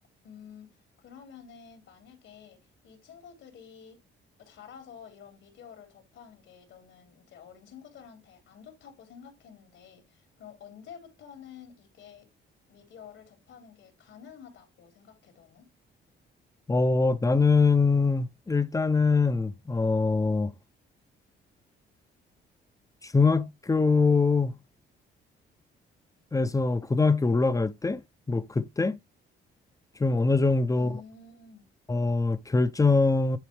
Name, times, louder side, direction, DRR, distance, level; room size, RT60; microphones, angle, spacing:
voice 1, 0.2-4.0 4.4-12.3 12.7-15.7 30.7-31.7, left 7 dB, 80° left, 3.3 m, -50 dB
voice 2, 16.7-20.5 23.0-24.5 26.3-28.0 28.3-29.0 30.0-31.0 31.9-33.4, left 4 dB, 15° left, 0.7 m, -23 dB
10.5 x 4.1 x 3.2 m
cardioid pair, 90°, 20 cm